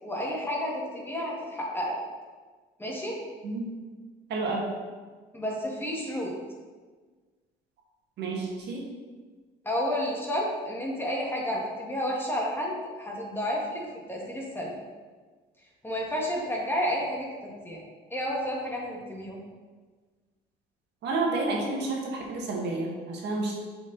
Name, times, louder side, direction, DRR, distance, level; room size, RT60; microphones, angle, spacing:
voice 1, 0.0-2.0 2.8-3.2 5.3-6.3 9.7-14.7 15.8-17.3 17.7-17.8 18.1-19.4, equal, 10° left, -2 dB, 1.7 m, -31 dB
voice 2, 4.3-4.7 8.2-8.8 21.0-23.6, right 3 dB, 65° right, -1 dB, 1.6 m, -30 dB
6.8 x 4.8 x 3.9 m, 1.4 s
cardioid pair, 95°, 18 cm